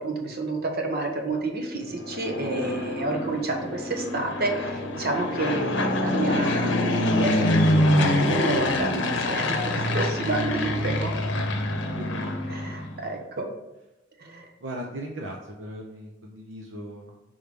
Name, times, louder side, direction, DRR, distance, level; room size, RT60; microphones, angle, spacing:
voice 1, 0.0-10.9 12.5-13.5 14.2-14.5, right 2 dB, 55° right, 2 dB, 1.1 m, -30 dB
Fixed-wing aircraft airplane, 1.9-13.0, left 1 dB, 65° left, 0.7 m, -25 dB
voice 2, 9.7-13.1 14.6-17.2, right 1 dB, 70° right, 0 dB, 0.7 m, -38 dB
5.4 x 3.4 x 5.0 m, 0.99 s
head